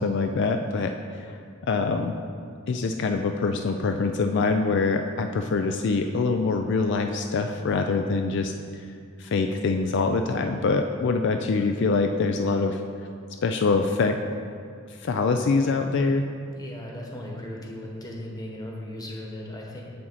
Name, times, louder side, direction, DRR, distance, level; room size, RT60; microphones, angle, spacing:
voice 1, 0.0-2.2 2.7-8.5 9.2-12.8 13.4-14.2 15.0-16.3, left 4 dB, 60° left, 6 dB, 0.4 m, -24 dB
voice 2, 16.5-19.8, left 1 dB, 20° left, -2 dB, 1.2 m, -37 dB
7.5 x 7.3 x 4.1 m, 2.3 s
head